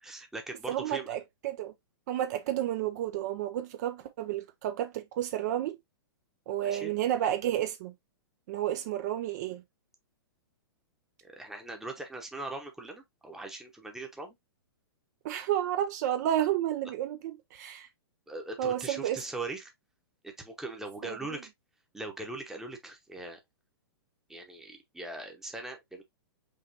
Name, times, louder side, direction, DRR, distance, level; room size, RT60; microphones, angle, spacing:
voice 1, 0.0-1.1 6.6-6.9 11.2-14.4 18.3-19.7 20.2-21.4 21.9-23.4 24.3-26.0, right 2 dB, 5° right, 0.9 m, -40 dB
voice 2, 0.7-1.7 2.1-5.8 6.5-7.9 8.5-9.6 15.2-17.9 18.6-19.2 21.0-21.2, right 11 dB, 45° right, 0.6 m, -31 dB
5.4 x 3.1 x 2.8 m
hypercardioid pair, 145°, 13 cm